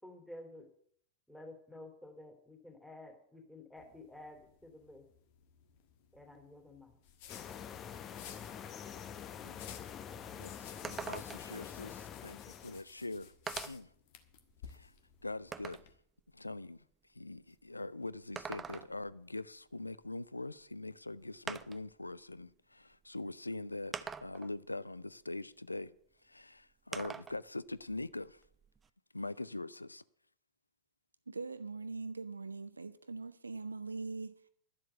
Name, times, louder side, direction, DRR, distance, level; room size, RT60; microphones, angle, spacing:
voice 1, 0.0-0.7 1.3-5.0 6.1-7.0, left 1 dB, ahead, 2.7 m, -52 dB
sound 1, 3.8-15.9, left 8 dB, 50° left, 1.5 m, -55 dB
sound 2, 7.3-12.8, left 8 dB, 30° left, 0.9 m, -46 dB
voice 2, 10.3-13.3 13.7-13.9 14.7-14.9 15.2-15.9 16.3-16.8 17.1-26.0 26.2-28.4 29.1-30.0, left 2 dB, 85° left, 0.4 m, -43 dB
sound 3, 10.8-11.6 12.7-12.8 13.5-13.9 14.5-15.9 18.1-19.1 20.6-20.7 21.5-21.9 22.9-23.0 23.9-24.6 26.9-27.4 27.8-28.9, right 6 dB, 20° right, 0.5 m, -44 dB
voice 3, 31.3-34.5, right 4 dB, 80° right, 0.6 m, -42 dB
11.5 x 7.6 x 8.0 m
figure-of-eight pair, 90°, 0 cm